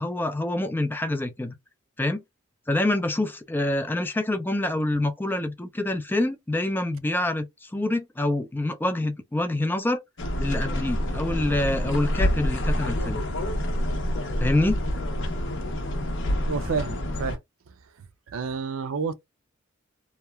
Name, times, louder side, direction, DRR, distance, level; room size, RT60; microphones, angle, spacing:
voice 1, 0.0-1.5 2.0-2.2 2.7-10.0 10.4-13.2 14.4-14.8, left 1 dB, 10° left, 0.3 m, -26 dB
sound 1, 10.2-17.4, left 1 dB, 65° left, 0.7 m, -27 dB
voice 2, 16.5-17.4 18.3-19.1, right 5 dB, 85° right, 0.4 m, -29 dB
2.9 x 2.2 x 2.2 m
head